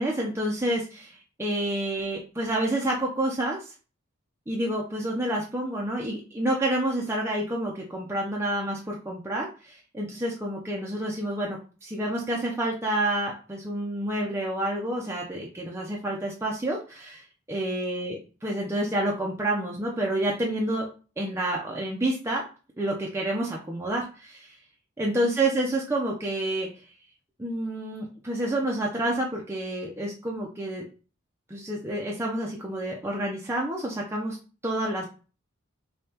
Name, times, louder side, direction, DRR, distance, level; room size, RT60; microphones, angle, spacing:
voice 1, 0.0-3.7 4.5-20.9 21.2-22.4 22.8-24.6 25.0-26.7 27.4-30.9 31.5-34.4 34.6-35.0, right 1 dB, 10° right, -2 dB, 0.4 m, -29 dB
5.2 x 2.3 x 2.8 m, 0.36 s
head